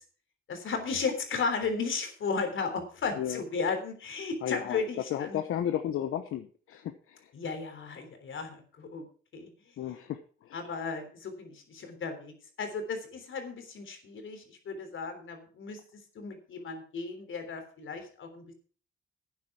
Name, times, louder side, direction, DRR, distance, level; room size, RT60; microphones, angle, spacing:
voice 1, 0.5-5.4 7.3-9.1 9.3-9.7 10.5-15.8 16.2-18.5, left 4 dB, 70° left, 6 dB, 3.5 m, -35 dB
voice 2, 4.4-4.8 5.1-7.3 9.8-10.7, left 10 dB, 90° left, 8 dB, 1.0 m, -34 dB
12.0 x 9.6 x 4.8 m, 0.41 s
cardioid pair, 100°, 21 cm